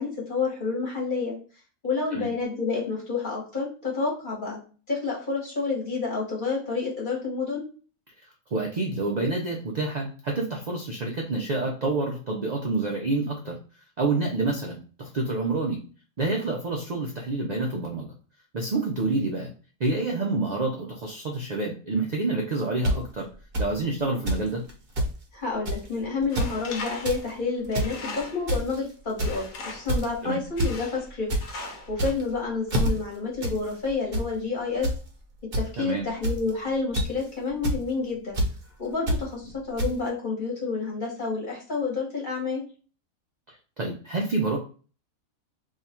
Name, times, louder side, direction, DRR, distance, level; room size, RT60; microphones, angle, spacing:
voice 1, 0.0-1.3 1.8-4.6 4.9-7.7 25.3-31.3 31.9-34.9 35.5-38.4 38.8-42.6, left 4 dB, 40° left, -3 dB, 1.3 m, -29 dB
voice 2, 8.5-13.6 14.0-15.8 16.2-18.1 18.5-19.5 19.8-23.3 23.6-24.6 30.2-30.4 35.8-36.1 43.8-44.6, right 3 dB, 70° right, 0 dB, 0.4 m, -28 dB
sound 1, 22.8-22.9 23.5-23.7 24.3-24.4 24.7-24.8 25.0-25.1 25.6-25.9 26.2-26.5 26.9-27.2 27.6-27.9 28.5-28.8 29.2-29.5 29.9-30.1 30.6-30.7 31.1-31.4 31.9-32.3 32.7-32.9 33.4-33.6 33.9-34.2 34.8-35.0 35.5-35.6 36.2-36.5 36.9-37.2 37.6-37.8 38.3-38.5 39.1-39.2 39.8-39.9, right 1 dB, 50° right, 0.9 m, -25 dB
Tools, 26.3-28.6 29.2-30.0 30.6-31.1 31.4-32.1, left 3 dB, 75° left, 1.1 m, -39 dB
2.7 x 2.4 x 4.2 m, 0.39 s
omnidirectional pair, 1.5 m